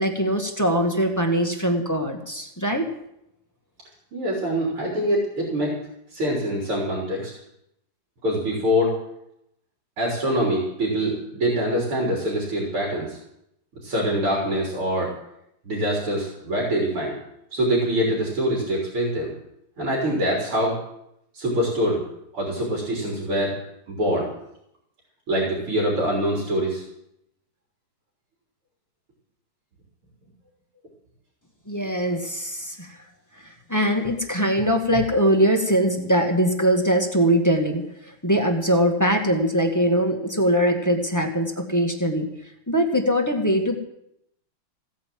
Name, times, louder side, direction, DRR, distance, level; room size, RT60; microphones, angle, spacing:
voice 1, 0.0-2.9 31.7-32.9 33.7-37.8 38.2-42.3 42.7-43.8, equal, 10° left, 2 dB, 1.6 m, -22 dB
voice 2, 4.1-5.8 6.1-7.3 8.2-9.0 10.0-13.2 13.8-15.1 15.6-17.2 17.5-19.3 19.8-20.8 21.3-22.0 22.3-23.6 23.9-24.3 25.3-26.8, equal, 80° right, -3 dB, 4.6 m, -24 dB
16.5 x 9.5 x 7.6 m, 0.78 s
omnidirectional pair, 2.4 m